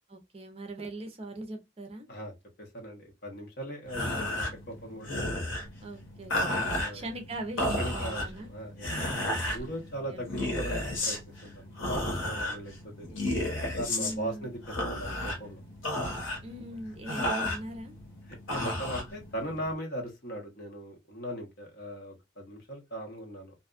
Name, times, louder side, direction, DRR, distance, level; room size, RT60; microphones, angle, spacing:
voice 1, 0.1-2.1 5.8-8.5 10.1-10.5 12.5-12.6 13.9-14.5 16.4-17.9, right 1 dB, 30° right, 0.5 m, -40 dB
voice 2, 2.6-5.2 6.3-7.0 7.8-8.9 9.4-13.1 13.8-15.6 18.5-23.5, right 1 dB, 55° left, 0.9 m, -39 dB
sound 1, 3.8-19.7, left 1 dB, 85° left, 1.1 m, -33 dB
2.5 x 2.3 x 2.4 m
head